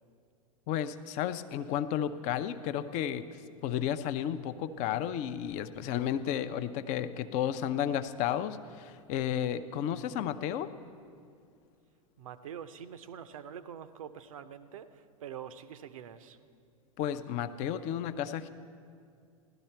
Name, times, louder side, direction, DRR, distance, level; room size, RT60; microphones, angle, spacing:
voice 1, 0.7-3.3 3.6-10.7 17.0-18.5, left 10 dB, 40° left, 12 dB, 0.5 m, -32 dB
voice 2, 12.2-16.4, right 8 dB, 65° right, 13 dB, 0.6 m, -45 dB
16.5 x 12.0 x 4.5 m, 2.3 s
figure-of-eight pair, 90°, 19 cm